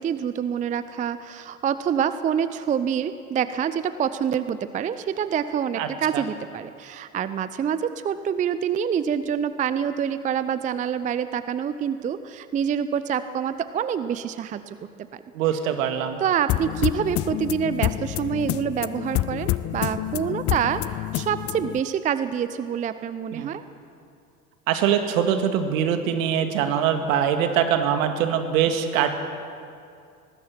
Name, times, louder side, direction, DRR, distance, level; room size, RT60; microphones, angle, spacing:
voice 1, 0.0-14.8 15.1-15.2 16.2-20.8 21.1-23.6, right 8 dB, 15° right, 13 dB, 0.5 m, -26 dB
voice 2, 5.8-6.2 15.3-16.2 23.3-23.5 24.7-29.1, right 8 dB, 60° right, 7 dB, 2.2 m, -23 dB
sound 1, 16.5-21.8, left 15 dB, 30° left, 0.6 m, -28 dB
24.5 x 19.5 x 6.0 m, 2.4 s
figure-of-eight pair, 75°, 46 cm